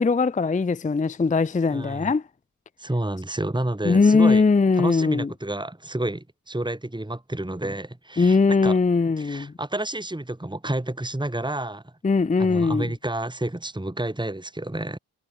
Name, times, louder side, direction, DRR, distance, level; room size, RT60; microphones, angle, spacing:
voice 1, 0.0-2.2 3.8-5.3 8.2-9.5 12.0-12.9, left 4 dB, 20° left, 0.5 m, -20 dB
voice 2, 1.7-2.1 2.8-4.4 4.8-8.8 9.2-11.8 12.4-15.0, right 1 dB, 10° right, 2.4 m, -30 dB
cardioid pair, 45°, 38 cm